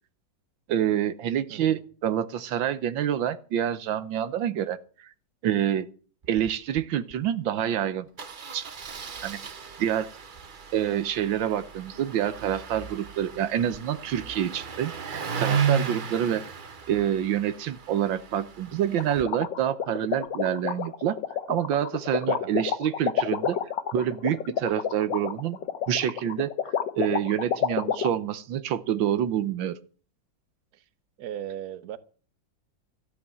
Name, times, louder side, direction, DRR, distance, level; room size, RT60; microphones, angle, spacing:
voice 1, 0.7-4.8 5.4-5.9 6.3-8.0 8.5-8.7 9.2-9.4 9.8-10.1 10.7-16.4 16.9-21.2 21.5-23.6 23.9-25.6 25.9-26.5 27.0-29.8, right 10 dB, 85° right, 14 dB, 1.7 m, -27 dB
voice 2, 1.5-1.8 22.3-22.6 30.7-30.8 31.2-32.0, right 10 dB, 60° right, 14 dB, 1.4 m, -37 dB
Engine starting, 6.2-6.5 6.8-6.9 7.1-7.3 8.2-19.2, right 6 dB, 40° right, 0.7 m, -34 dB
sound 1, 19.0-28.1, left 8 dB, 75° left, 1.7 m, -28 dB
14.0 x 8.7 x 7.7 m, 0.39 s
omnidirectional pair, 2.0 m